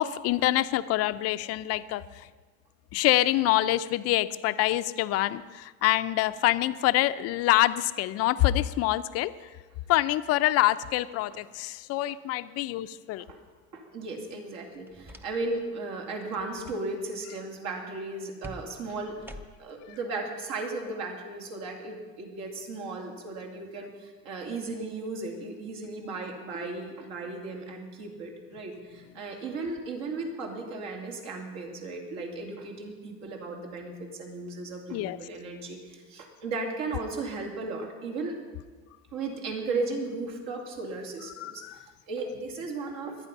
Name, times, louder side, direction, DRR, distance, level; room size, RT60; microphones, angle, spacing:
voice 1, 0.0-2.3 2.9-9.3 9.9-13.2 34.9-35.2 41.4-41.9, left 15 dB, 50° left, 14 dB, 0.5 m, -26 dB
voice 2, 13.7-38.3 39.1-43.2, right 3 dB, 65° right, 2 dB, 2.9 m, -36 dB
sound 1, 14.7-15.7 16.0-16.3 18.4-19.8, equal, 5° right, 0.6 m, -46 dB
23.0 x 9.1 x 5.4 m, 1.4 s
cardioid pair, 160°, 31 cm